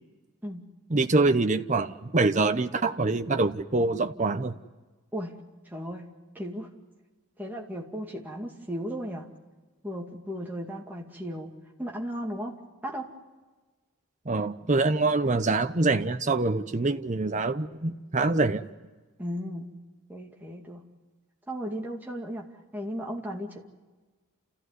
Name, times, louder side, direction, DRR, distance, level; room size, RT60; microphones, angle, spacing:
voice 1, 0.9-4.6 14.3-18.7, right 3 dB, 35° right, 9 dB, 0.8 m, -25 dB
voice 2, 5.7-6.1 6.3-6.7 7.4-9.3 9.8-11.5 11.8-13.1 19.2-19.8 20.1-20.8 21.5-23.7, equal, 10° right, -1 dB, 2.2 m, -36 dB
29.0 x 15.0 x 9.6 m, 1.3 s
head